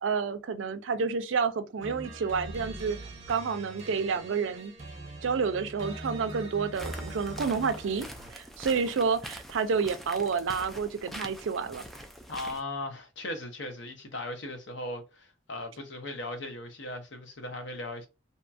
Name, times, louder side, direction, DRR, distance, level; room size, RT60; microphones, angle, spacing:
voice 1, 0.0-3.0 3.3-4.7 5.2-11.8, right 5 dB, 75° right, 0.4 m, -29 dB
sound 1, 1.8-8.5, right 2 dB, 35° right, 0.8 m, -42 dB
sound 2, 6.7-12.6, equal, ahead, 0.3 m, -44 dB
voice 2, 12.3-18.1, left 2 dB, 65° left, 0.7 m, -38 dB
2.8 x 2.3 x 2.5 m
head